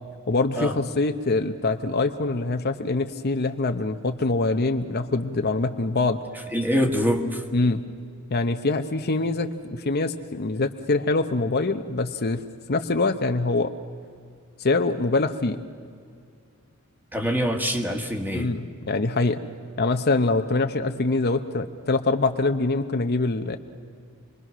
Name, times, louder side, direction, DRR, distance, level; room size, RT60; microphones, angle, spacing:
voice 1, 0.3-6.2 7.5-7.8 8.3-12.4 12.7-13.7 14.6-15.6 18.3-19.4 19.8-23.6, left 3 dB, 50° left, 7 dB, 0.8 m, -24 dB
voice 2, 6.5-7.4 17.1-18.5, equal, 10° right, 3 dB, 1.7 m, -24 dB
28.0 x 21.5 x 6.2 m, 2.2 s
head